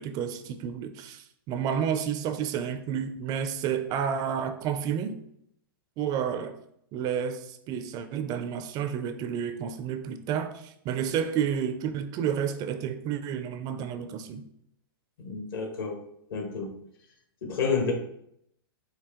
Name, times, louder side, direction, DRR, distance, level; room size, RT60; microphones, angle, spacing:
voice 1, 0.0-5.2 6.0-6.6 6.9-14.5, right 8 dB, 30° right, 0.4 m, -30 dB
voice 2, 15.2-16.0 16.3-16.7 17.4-17.9, left 5 dB, 65° left, 1.3 m, -29 dB
4.5 x 2.8 x 3.6 m
hypercardioid pair, 120°, 13 cm